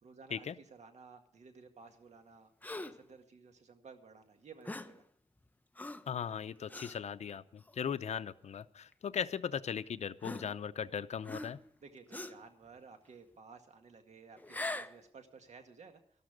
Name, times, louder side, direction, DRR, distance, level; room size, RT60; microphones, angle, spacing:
voice 1, 0.0-5.0 11.8-16.0, right 5 dB, 75° right, 6 dB, 1.9 m, -55 dB
Gasp, 2.6-3.1 4.6-5.0 5.8-6.1 6.7-7.0 7.7-7.8 8.9-9.0 10.2-10.9 11.2-11.7 12.1-12.5 14.4-15.0, left 2 dB, 15° left, 0.7 m, -42 dB
voice 2, 6.1-11.6, left 7 dB, 75° left, 13 dB, 0.6 m, -38 dB
13.0 x 12.5 x 5.1 m, 0.65 s
wide cardioid pair, 85°, 12 cm